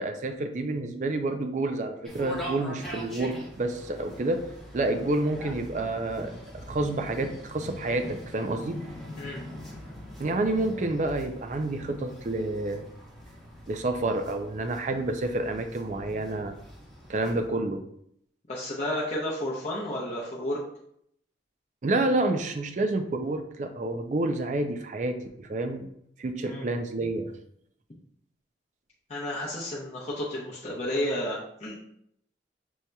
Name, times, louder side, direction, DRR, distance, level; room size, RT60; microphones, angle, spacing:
voice 1, 0.0-4.4 4.7-8.8 10.2-12.8 13.7-16.5 17.1-17.8 21.8-25.9 26.2-27.3, right 2 dB, 40° right, 7 dB, 0.4 m, -29 dB
sound 1, 2.0-17.5, equal, ahead, 0.9 m, -43 dB
voice 2, 18.5-20.6 26.4-26.6 29.1-31.8, left 1 dB, 35° left, -7 dB, 0.7 m, -32 dB
6.2 x 2.8 x 2.2 m, 0.72 s
head